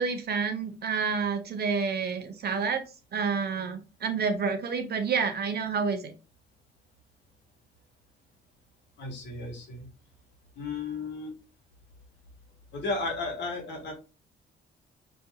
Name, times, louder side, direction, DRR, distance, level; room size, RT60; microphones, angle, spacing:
voice 1, 0.0-2.8 3.1-6.1, right 5 dB, 55° right, 7 dB, 0.9 m, -29 dB
voice 2, 9.0-9.9 10.6-11.4 12.7-13.9, left 3 dB, 65° left, 2 dB, 1.7 m, -34 dB
5.3 x 2.9 x 2.2 m, 0.30 s
cardioid pair, 90°, 20 cm